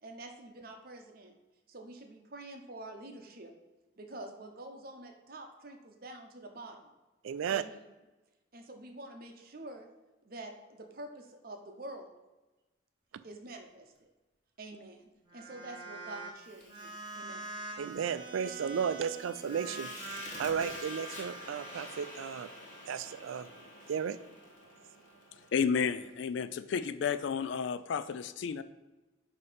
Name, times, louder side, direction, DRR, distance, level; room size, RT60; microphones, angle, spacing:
voice 1, 0.0-1.3 1.7-3.5 4.0-6.9 7.5-7.8 8.5-9.9 10.2-12.1 13.2-14.1 14.6-17.8, right 2 dB, 50° right, 5 dB, 0.8 m, -47 dB
voice 2, 7.2-7.6 17.8-19.9 20.4-22.5 22.9-23.5 23.9-24.2, right 7 dB, 90° right, 14 dB, 0.4 m, -34 dB
sound 1, 15.2-16.3 16.6-26.2, right 2 dB, 25° right, 0.9 m, -47 dB
Fire, 16.4-25.6, left 1 dB, 40° left, 1.4 m, -49 dB
voice 3, 25.5-28.6, left 6 dB, 65° left, 13 dB, 0.3 m, -32 dB
8.2 x 2.9 x 5.0 m, 1.1 s
head